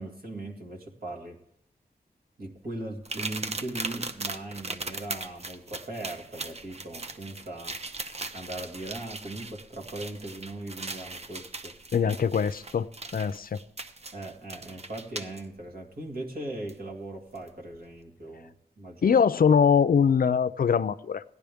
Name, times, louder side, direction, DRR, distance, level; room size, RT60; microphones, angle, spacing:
voice 1, 0.0-1.4 2.4-7.8 8.3-11.7 12.0-12.1 14.1-19.2, right 2 dB, 60° right, 0 dB, 2.1 m, -39 dB
sound 1, 3.0-15.4 16.7-16.8 17.3-17.5, right 3 dB, 40° right, 0.8 m, -39 dB
voice 2, 11.9-12.9 13.1-13.6 19.0-21.2, left 6 dB, 60° left, 15 dB, 0.4 m, -22 dB
17.0 x 11.0 x 3.5 m, 0.77 s
wide cardioid pair, 75°, 17 cm